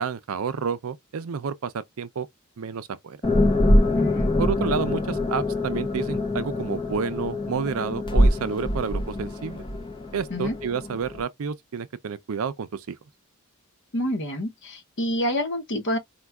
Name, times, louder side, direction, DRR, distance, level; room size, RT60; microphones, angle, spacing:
voice 1, 0.0-2.3 2.6-3.4 4.4-9.6 10.1-13.0, right 6 dB, 70° right, 0.5 m, -30 dB
sound 1, 3.2-11.2, left 1 dB, 20° left, 0.5 m, -24 dB
voice 2, 3.9-4.5 10.3-10.5 13.9-16.0, equal, 60° left, 0.9 m, -28 dB
4.4 x 2.2 x 2.3 m
head